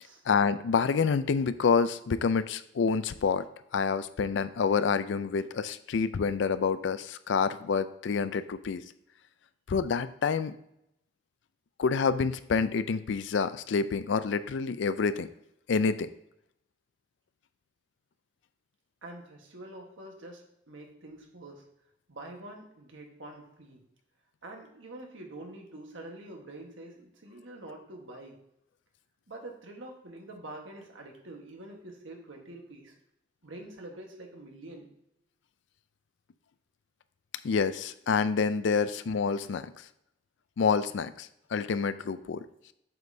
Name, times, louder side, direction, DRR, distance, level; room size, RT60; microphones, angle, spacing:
voice 1, 0.3-3.5 3.7-8.8 9.7-10.5 11.8-15.3 15.7-16.1 37.4-39.7 40.6-42.4, left 5 dB, 70° left, 13 dB, 0.4 m, -27 dB
voice 2, 19.0-21.6 22.1-23.8 24.4-28.4 29.3-32.9 33.4-34.9, right 2 dB, 85° right, 2 dB, 1.4 m, -46 dB
7.6 x 5.2 x 2.7 m, 0.79 s
head